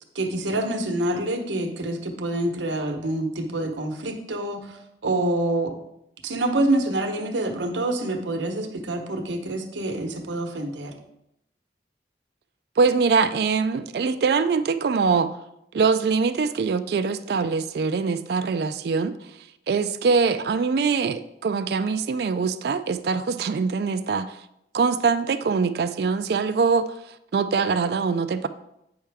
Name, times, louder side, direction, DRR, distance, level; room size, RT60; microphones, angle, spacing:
voice 1, 0.1-5.7 6.2-10.9, right 1 dB, 90° right, 5 dB, 1.0 m, -26 dB
voice 2, 12.8-15.3 15.7-19.2 19.7-24.4 24.7-26.9 27.3-28.5, right 5 dB, 60° right, 11 dB, 0.3 m, -23 dB
8.7 x 5.6 x 3.5 m, 0.82 s
head